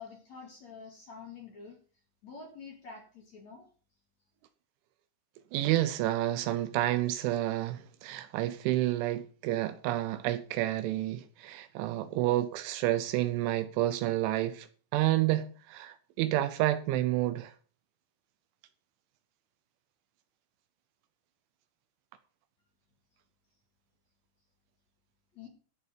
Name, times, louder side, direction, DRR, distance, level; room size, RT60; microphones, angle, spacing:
voice 1, 0.0-1.8 2.2-3.6 25.3-25.5, left 5 dB, 50° left, 2.5 m, -47 dB
voice 2, 5.5-14.7 14.9-17.5, right 14 dB, 80° right, 3.0 m, -29 dB
17.0 x 6.8 x 5.2 m
omnidirectional pair, 5.7 m